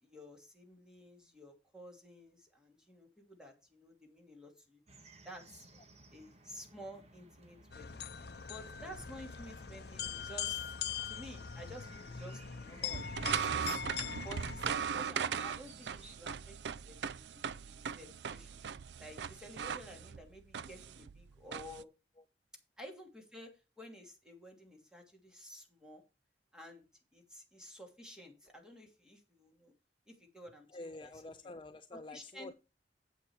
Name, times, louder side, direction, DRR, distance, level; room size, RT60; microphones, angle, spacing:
voice 1, 0.0-4.8 5.2-5.7 6.1-10.8 11.0-13.8 14.2-16.6 16.9-18.6 19.0-21.9 22.8-23.5 23.8-26.0 26.5-26.9 27.1-29.7 30.1-30.7 31.0-31.1 32.1-32.5, equal, 5° right, 2.8 m, -52 dB
sound 1, 4.9-16.2, right 2 dB, 40° right, 1.7 m, -59 dB
sound 2, 7.7-15.2, left 8 dB, 65° left, 0.7 m, -42 dB
sound 3, 12.9-21.8, right 7 dB, 75° right, 0.5 m, -39 dB
voice 2, 30.7-32.5, left 2 dB, 30° left, 0.6 m, -48 dB
8.4 x 8.4 x 4.8 m
head